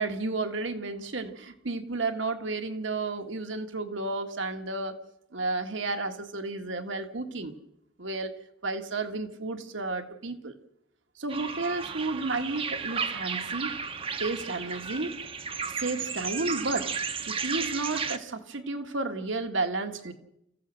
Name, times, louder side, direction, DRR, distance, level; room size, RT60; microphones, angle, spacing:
voice 1, 0.0-5.0 5.3-7.5 8.0-8.3 8.6-10.5 11.2-13.7 14.2-15.1 15.8-16.9 17.3-20.1, right 3 dB, 75° right, 6 dB, 1.6 m, -32 dB
sound 1, 11.3-18.2, right 5 dB, 30° right, 0.8 m, -34 dB
29.5 x 15.5 x 6.4 m, 0.84 s
head